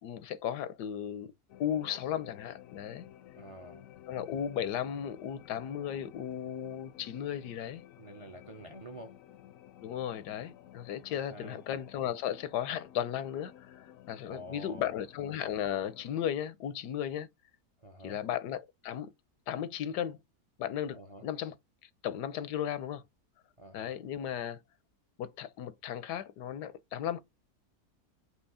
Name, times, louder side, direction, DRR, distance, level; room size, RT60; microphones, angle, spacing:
voice 1, 0.0-1.3 1.6-3.0 4.1-7.8 9.8-17.3 18.0-19.1 19.5-20.2 20.6-21.6 22.0-23.0 23.7-24.6 25.2-27.2, left 10 dB, 90° left, 1.3 m, -35 dB
sound 1, 1.5-16.3, left 12 dB, 70° left, 0.9 m, -54 dB
voice 2, 3.3-3.9 8.0-9.2 11.1-11.6 14.3-15.0 17.8-18.2 20.9-21.3 23.6-24.0, right 1 dB, 30° right, 0.6 m, -48 dB
6.3 x 3.1 x 5.5 m
omnidirectional pair, 1.7 m